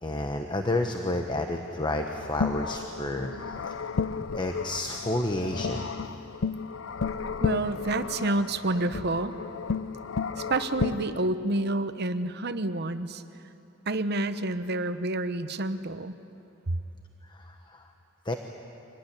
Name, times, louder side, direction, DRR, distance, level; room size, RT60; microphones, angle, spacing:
voice 1, 0.0-3.8 4.3-6.2 17.3-17.8 18.2-18.3, left 1 dB, 25° left, 4 dB, 1.1 m, -31 dB
sound 1, 1.9-11.3, left 5 dB, 80° left, 0.6 m, -33 dB
voice 2, 7.4-9.4 10.4-13.2 13.9-16.2 16.7-16.8, right 2 dB, 55° right, 11 dB, 1.0 m, -29 dB
25.5 x 19.0 x 10.0 m, 2.9 s
head